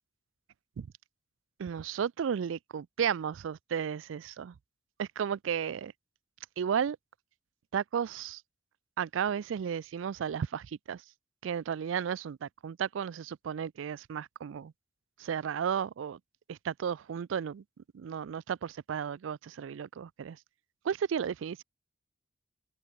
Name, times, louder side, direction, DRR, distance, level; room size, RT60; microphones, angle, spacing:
voice 1, 1.6-4.5 5.0-5.9 6.6-7.0 7.7-8.4 9.0-11.0 11.4-14.7 15.2-16.2 16.5-17.6 17.9-20.4 20.8-21.6, right 7 dB, 85° right, 0.4 m, -33 dB
open air
head